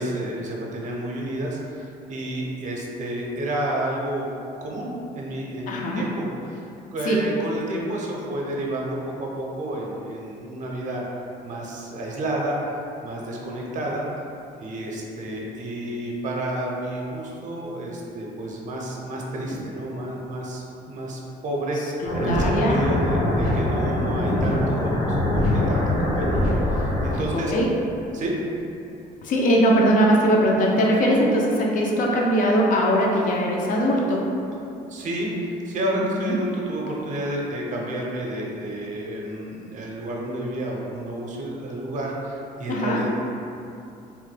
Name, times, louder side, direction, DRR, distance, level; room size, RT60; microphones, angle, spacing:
voice 1, 0.0-4.3 4.6-11.0 11.4-12.6 13.0-14.1 14.6-27.5 28.1-28.3 34.9-43.1, right 1 dB, 45° right, -2 dB, 0.6 m, -30 dB
voice 2, 5.7-6.1 7.0-7.2 22.0-22.8 27.3-27.7 29.2-34.3 36.1-36.3 42.7-43.0, equal, 50° left, -2 dB, 0.5 m, -21 dB
sound 1, 22.0-27.1, left 1 dB, 80° left, 1.2 m, -23 dB
3.0 x 2.1 x 3.2 m, 2.7 s
cardioid pair, 110°, 17 cm